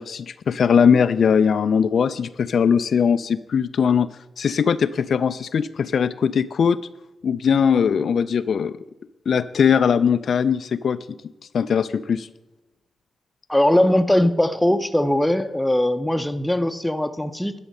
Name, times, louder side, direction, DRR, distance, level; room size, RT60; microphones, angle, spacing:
voice 1, 0.0-4.1 4.4-6.8 7.2-8.8 9.3-11.0 11.5-12.3, left 7 dB, 65° left, 12 dB, 0.3 m, -20 dB
voice 2, 13.5-17.5, left 1 dB, 5° left, 7 dB, 0.5 m, -20 dB
11.0 x 6.5 x 6.4 m, 1.0 s
wide cardioid pair, 110°, 0 cm